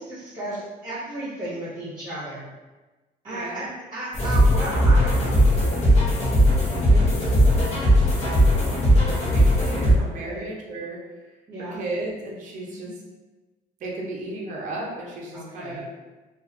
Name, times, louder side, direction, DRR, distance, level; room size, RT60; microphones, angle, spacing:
voice 1, 0.0-2.4 3.2-5.4 5.7-6.1 10.0-10.5 11.5-11.8 12.6-12.9 15.3-15.8, right 1 dB, 25° right, -10 dB, 1.0 m, -34 dB
voice 2, 3.3-3.7 6.6-11.2 11.7-13.0 13.8-15.9, right 2 dB, 50° right, -3 dB, 0.6 m, -35 dB
sound 1, 4.1-9.9, equal, 40° left, 0.9 m, -18 dB
2.4 x 2.3 x 2.5 m, 1.2 s
cardioid pair, 110°, 17 cm